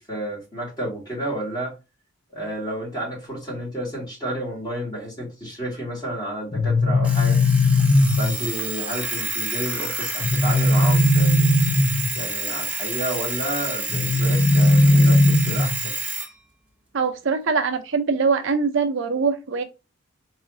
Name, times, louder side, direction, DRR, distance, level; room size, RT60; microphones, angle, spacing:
voice 1, 0.0-1.7 2.3-7.4 8.1-11.5 12.1-15.9, right 1 dB, 20° left, 2.6 m, -31 dB
sound 1, 6.5-8.5 10.2-12.2 13.9-15.9, left 1 dB, 45° left, 0.6 m, -18 dB
Alarm, 7.0-16.3, right 3 dB, 5° right, 0.6 m, -29 dB
voice 2, 16.9-19.6, right 5 dB, 65° right, 0.5 m, -22 dB
4.0 x 3.1 x 3.7 m
head